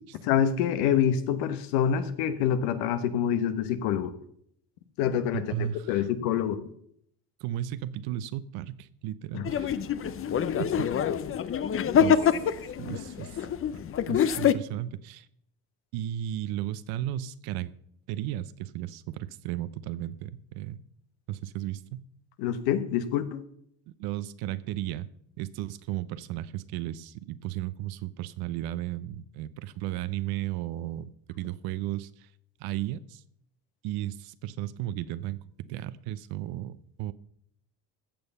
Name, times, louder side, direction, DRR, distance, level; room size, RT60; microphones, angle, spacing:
voice 1, 0.2-4.1 5.0-6.6 9.3-9.5 22.4-23.4, left 9 dB, 75° left, 1.3 m, -26 dB
voice 2, 5.3-6.1 7.4-9.8 10.6-10.9 11.9-12.3 12.8-13.5 14.1-15.3 15.9-17.7 18.1-20.8 21.3-22.1 23.9-25.1 25.4-32.3 32.6-33.2 33.8-35.4 35.7-37.1, right 13 dB, 65° right, 0.8 m, -34 dB
sound 1, 9.4-14.5, left 8 dB, 35° left, 0.7 m, -26 dB
15.0 x 7.1 x 5.5 m
supercardioid pair, 90°, 40 cm